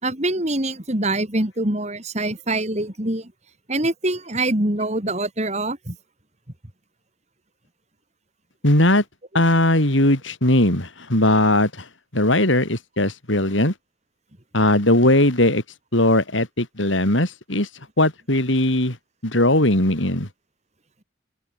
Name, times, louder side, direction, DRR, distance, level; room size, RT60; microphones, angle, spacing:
voice 1, 0.0-3.3 3.7-5.9, right 2 dB, 35° right, 3.1 m, -24 dB
voice 2, 8.6-9.0 9.3-11.7 12.1-13.7 14.5-15.6 15.9-17.7 18.0-19.0 19.2-20.3, left 1 dB, 80° left, 6.1 m, -19 dB
open air
head